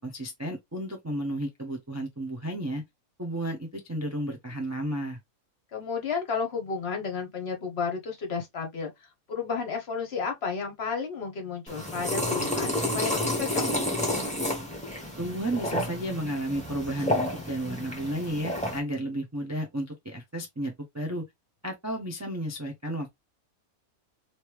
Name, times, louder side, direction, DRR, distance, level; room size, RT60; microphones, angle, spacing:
voice 1, 0.0-2.8 3.2-5.2 15.2-21.2 21.6-23.1, right 1 dB, 20° right, 0.4 m, -32 dB
voice 2, 5.7-8.9 9.3-13.6, left 5 dB, 50° left, 1.0 m, -32 dB
Slurping Coffee, 11.7-18.8, left 1 dB, 5° left, 1.0 m, -30 dB
3.2 x 2.8 x 3.0 m
omnidirectional pair, 1.5 m